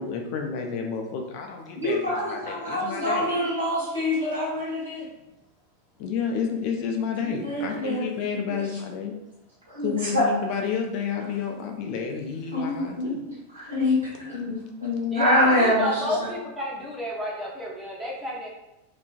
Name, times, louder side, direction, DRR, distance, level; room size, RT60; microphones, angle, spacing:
voice 1, 0.0-3.3 6.0-9.1 9.8-13.2, left 6 dB, 45° left, 2 dB, 0.3 m, -30 dB
voice 2, 1.7-5.1 7.2-8.0 9.7-10.2 12.5-16.3, left 1 dB, 70° right, -7 dB, 1.1 m, -26 dB
voice 3, 15.1-18.5, left 1 dB, 5° right, -6 dB, 0.7 m, -31 dB
2.4 x 2.2 x 2.4 m, 0.97 s
figure-of-eight pair, 90°, 0 cm